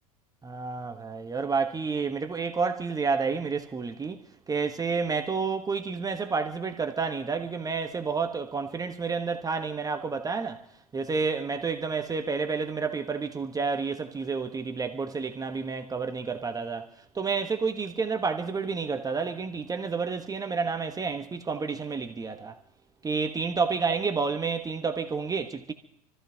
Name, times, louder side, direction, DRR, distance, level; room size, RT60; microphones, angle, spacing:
voice 1, 0.4-4.2 4.5-10.6 10.9-16.9 17.1-22.5 23.0-25.7, right 5 dB, 20° right, 1.2 m, -30 dB
28.0 x 14.5 x 2.9 m
hypercardioid pair, 80°, 20 cm